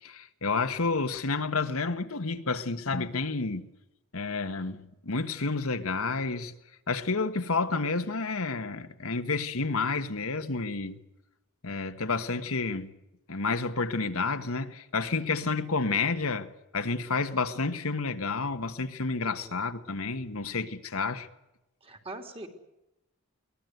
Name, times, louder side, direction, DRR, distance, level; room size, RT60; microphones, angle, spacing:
voice 1, 0.0-3.7 4.1-6.5 6.9-11.0 11.6-12.9 13.3-21.3, left 4 dB, 75° left, 1.5 m, -30 dB
voice 2, 21.8-22.5, right 2 dB, 25° right, 3.2 m, -42 dB
23.0 x 19.0 x 8.1 m
head